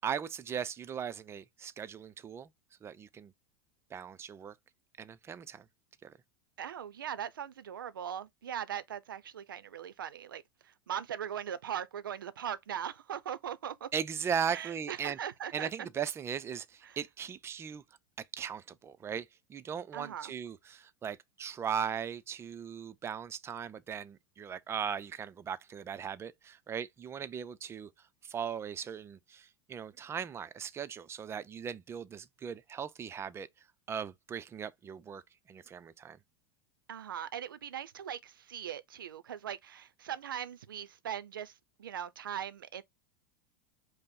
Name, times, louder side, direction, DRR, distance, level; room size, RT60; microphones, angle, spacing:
voice 1, 0.0-2.5 2.8-3.3 3.9-4.5 5.0-5.6 6.0-6.1 13.9-15.2 15.5-17.8 18.4-27.9 28.2-33.5 33.9-35.2 35.5-36.2, right 7 dB, 25° right, 0.5 m, -38 dB
voice 2, 6.6-13.9 14.5-15.7 16.8-17.0 19.9-20.3 36.9-42.8, right 9 dB, 80° right, 0.5 m, -40 dB
5.2 x 2.1 x 4.1 m
hypercardioid pair, 90°, 11 cm